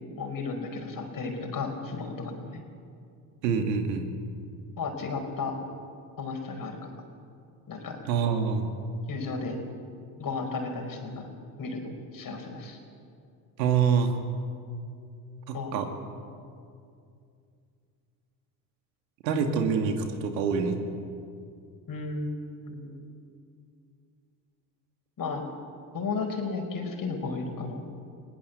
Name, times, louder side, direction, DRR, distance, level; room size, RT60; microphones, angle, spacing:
voice 1, 0.2-2.6 4.8-5.6 6.2-6.9 7.7-8.0 9.1-9.6 10.2-11.3 11.6-12.8 15.5-15.8 21.9-23.1 25.2-25.5 25.9-27.8, left 4 dB, 40° left, 4 dB, 5.0 m, -34 dB
voice 2, 3.4-4.1 8.1-8.7 13.6-14.1 15.5-15.9 19.2-20.8, right 6 dB, 80° right, 6 dB, 2.4 m, -26 dB
21.0 x 17.5 x 8.2 m, 2.4 s
hypercardioid pair, 75°, 50 cm